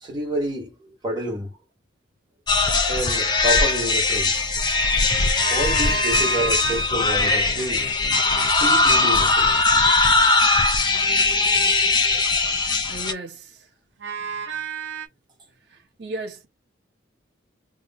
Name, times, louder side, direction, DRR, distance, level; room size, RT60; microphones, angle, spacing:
voice 1, 0.0-0.7 1.0-1.5 2.9-4.3 5.5-7.9 8.2-9.6 12.2-12.3, right 1 dB, 25° right, 1.2 m, -29 dB
sound 1, 2.5-13.1, left 3 dB, 25° left, 0.5 m, -20 dB
sound 2, 5.4-7.0 8.6-9.1 14.0-15.1, right 6 dB, 80° right, 0.8 m, -32 dB
voice 2, 12.9-13.7 15.7-16.5, right 2 dB, 60° right, 1.0 m, -35 dB
3.0 x 2.0 x 4.0 m
head